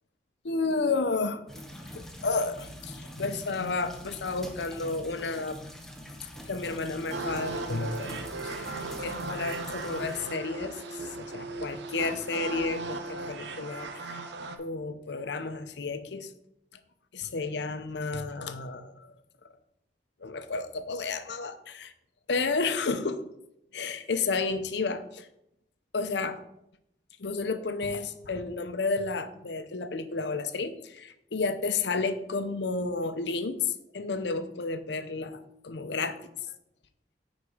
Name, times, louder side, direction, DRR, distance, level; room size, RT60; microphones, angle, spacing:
voice 1, 0.4-1.4 1.9-5.6 6.5-8.2 8.4-8.7 9.0-14.2 14.6-16.3 17.1-19.1 20.2-21.9 22.3-23.2 23.7-25.3 25.9-26.4 27.2-36.2, left 4 dB, 80° left, 10 dB, 0.7 m, -31 dB
sound 1, 1.5-10.2, equal, 5° left, 0.7 m, -44 dB
sound 2, 7.1-14.6, right 3 dB, 80° right, 0.7 m, -37 dB
9.5 x 4.1 x 4.9 m, 0.80 s
head